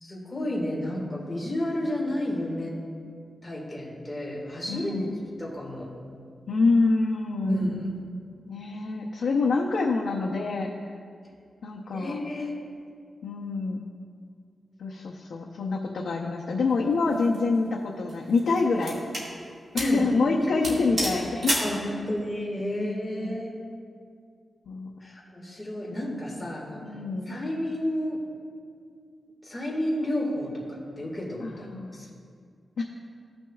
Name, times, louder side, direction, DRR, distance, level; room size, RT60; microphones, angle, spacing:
voice 1, 0.0-2.7 3.4-5.1 5.4-5.9 7.4-7.8 11.9-12.5 19.7-20.1 20.4-20.8 21.6-23.6 25.0-26.8 27.3-28.2 29.4-31.7 31.9-32.1, left 1 dB, 15° left, -4 dB, 1.8 m, -31 dB
voice 2, 4.7-5.2 6.5-7.7 8.5-10.7 11.6-12.2 13.2-13.8 14.8-19.0 19.7-21.6 22.8-22.9 23.2-23.4 24.7-25.0 26.8-27.4 31.4-32.1 32.8-32.9, left 3 dB, 90° left, -2 dB, 0.7 m, -26 dB
sound 1, 17.1-17.4 18.1-19.3 19.8-20.0 20.3-20.4 20.6-21.8, right 1 dB, 50° right, 1.9 m, -30 dB
15.5 x 6.2 x 2.4 m, 2.2 s
wide cardioid pair, 170°, 0 cm